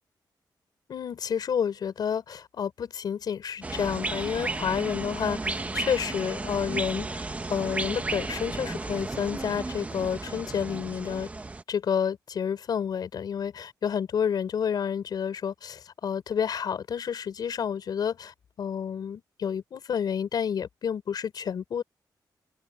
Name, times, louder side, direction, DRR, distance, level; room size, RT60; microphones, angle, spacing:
voice 1, 0.9-11.3 11.7-21.8, left 7 dB, 60° left, 4.6 m, -30 dB
sound 1, 3.6-11.6, right 3 dB, 20° right, 1.0 m, -33 dB
open air
wide cardioid pair, 170°, 8 cm